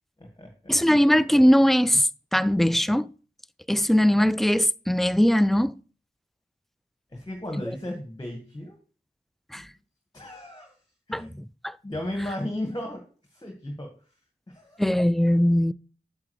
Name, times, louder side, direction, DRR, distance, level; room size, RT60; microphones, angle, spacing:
voice 1, 0.2-0.7 7.1-8.8 9.5-9.6 10.1-10.8 11.1-11.3 11.8-13.0 13.3-13.9 14.5-14.8, left 1 dB, 25° left, 1.7 m, -35 dB
voice 2, 0.7-3.1 3.7-5.8 9.5-9.7 11.1-11.2 11.6-11.8 14.8-15.7, equal, ahead, 0.3 m, -20 dB
8.5 x 7.4 x 3.2 m
wide cardioid pair, 55°, 18 cm